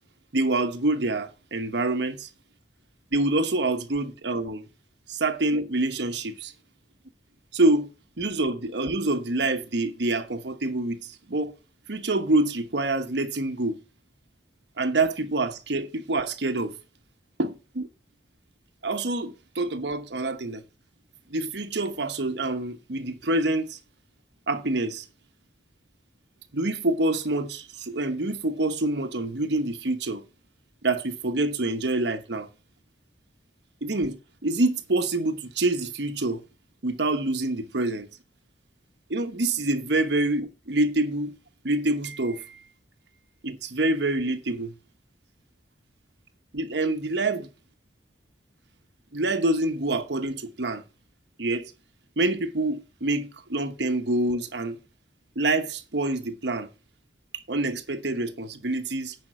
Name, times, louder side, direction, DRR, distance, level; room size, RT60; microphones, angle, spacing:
voice 1, 0.3-2.3 3.1-4.7 5.1-6.5 7.5-7.9 8.2-11.5 11.9-13.8 14.8-16.7 17.4-17.9 18.8-20.6 21.3-23.8 24.5-25.1 26.5-30.2 30.8-32.5 33.8-36.4 36.8-38.1 39.1-41.3 41.6-42.6 43.4-44.7 46.5-47.5 49.1-50.8 51.4-51.7 52.2-54.8 55.4-56.7 57.5-59.2, right 2 dB, 65° right, 1.0 m, -26 dB
9.5 x 5.2 x 5.0 m
head